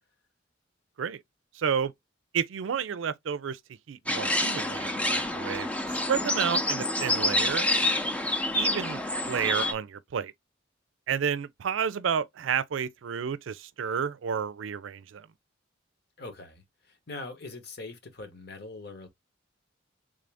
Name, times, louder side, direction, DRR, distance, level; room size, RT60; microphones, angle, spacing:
voice 1, 1.5-1.9 2.3-3.6 3.9-7.7 8.5-9.0 9.3-10.3 11.1-15.3, right 7 dB, 85° right, 0.4 m, -31 dB
sound 1, 4.1-9.7, left 1 dB, 5° left, 0.5 m, -28 dB
voice 2, 16.2-19.1, left 3 dB, 55° left, 1.1 m, -42 dB
3.6 x 2.5 x 3.4 m
head